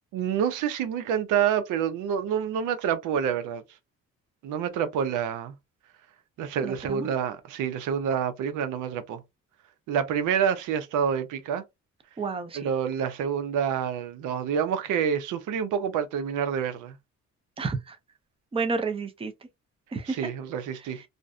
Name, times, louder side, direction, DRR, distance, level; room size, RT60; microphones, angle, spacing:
voice 1, 0.1-3.6 4.4-5.5 6.4-9.2 9.9-11.6 12.6-17.0 20.1-21.0, right 8 dB, 90° right, 0.6 m, -27 dB
voice 2, 6.6-7.1 12.2-12.7 17.6-18.0 18.5-19.3 19.9-20.3 20.8-21.0, right 4 dB, 20° right, 0.5 m, -31 dB
2.5 x 2.1 x 2.3 m
cardioid pair, 90°, 30 cm